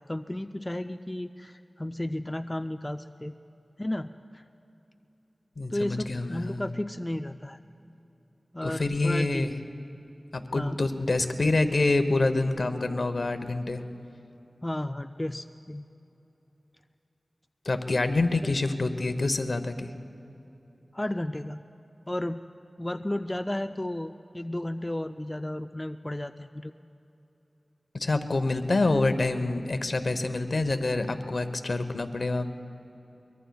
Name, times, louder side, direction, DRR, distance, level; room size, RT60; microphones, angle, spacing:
voice 1, 0.0-3.4 3.8-4.4 5.7-7.6 8.5-9.5 10.5-10.8 14.6-15.9 20.9-21.7 22.1-22.5 22.8-26.7, left 1 dB, 20° left, 7 dB, 0.4 m, -33 dB
voice 2, 5.6-6.7 8.6-9.6 10.3-13.8 17.6-19.9 27.9-32.5, left 2 dB, 65° left, 9 dB, 0.9 m, -27 dB
23.5 x 22.5 x 2.3 m, 3.0 s
wide cardioid pair, 55°, 0 cm